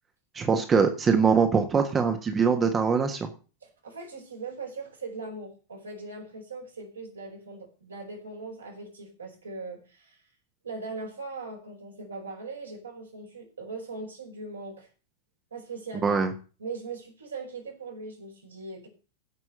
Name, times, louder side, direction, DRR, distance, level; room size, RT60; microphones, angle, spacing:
voice 1, 0.3-3.3 16.0-16.3, right 5 dB, 20° right, 6 dB, 1.5 m, -23 dB
voice 2, 3.6-10.2 10.6-14.9 15.5-16.2 16.6-18.9, right 3 dB, 75° right, 1 dB, 4.8 m, -40 dB
15.5 x 6.2 x 6.7 m, 0.36 s
figure-of-eight pair, 90°, 0 cm